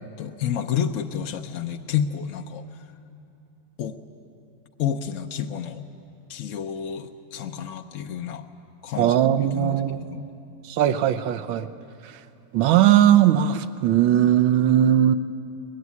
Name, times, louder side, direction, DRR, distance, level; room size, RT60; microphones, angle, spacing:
voice 1, 0.2-2.6 3.8-4.0 4.8-5.9 6.3-8.4 8.8-10.2, left 8 dB, 60° left, 5 dB, 0.8 m, -30 dB
voice 2, 9.0-10.1 10.6-11.7 12.0-12.2 12.5-15.1, right 11 dB, 90° right, 11 dB, 1.5 m, -19 dB
22.5 x 20.5 x 9.5 m, 2.7 s
omnidirectional pair, 2.1 m